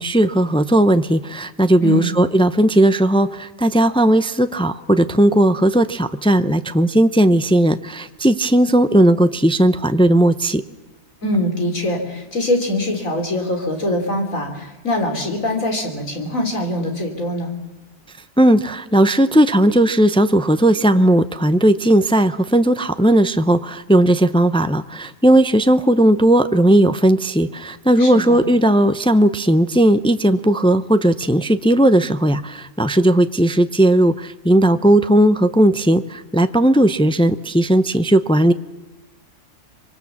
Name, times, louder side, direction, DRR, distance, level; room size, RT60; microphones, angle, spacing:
voice 1, 0.0-10.6 18.4-38.5, right 1 dB, 10° left, 11 dB, 0.3 m, -16 dB
voice 2, 1.8-2.2 11.2-17.5 28.0-28.5, left 1 dB, 75° left, 3 dB, 4.1 m, -23 dB
25.0 x 23.5 x 7.1 m, 1.2 s
omnidirectional pair, 1.4 m